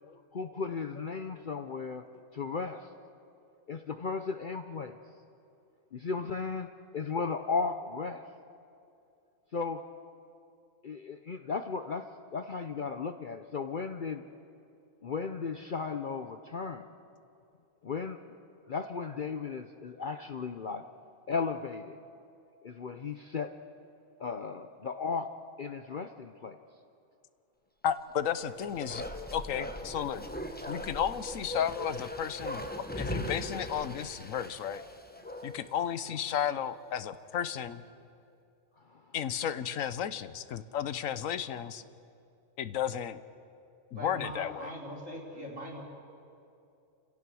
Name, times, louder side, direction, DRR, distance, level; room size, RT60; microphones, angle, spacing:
voice 1, 0.3-2.1 2.3-2.9 3.7-5.0 5.9-8.2 9.5-9.8 10.8-14.2 15.0-16.9 17.8-18.2 18.7-20.8 21.3-22.0 22.6-23.5 24.2-25.3 25.6-26.6 38.9-39.1, left 5 dB, 45° left, 8 dB, 0.8 m, -35 dB
voice 2, 27.8-29.0 29.3-30.3 30.7-32.7 32.9-34.8 35.4-37.8 39.1-41.8 42.6-43.2 43.9-44.7, left 9 dB, 85° left, 13 dB, 1.2 m, -33 dB
Bark, 28.2-35.8 36.1-36.2, left 1 dB, 10° left, 1.1 m, -40 dB
voice 3, 44.0-45.8, equal, 75° right, -2 dB, 4.0 m, -41 dB
30.0 x 16.5 x 6.3 m, 2.6 s
omnidirectional pair, 1.3 m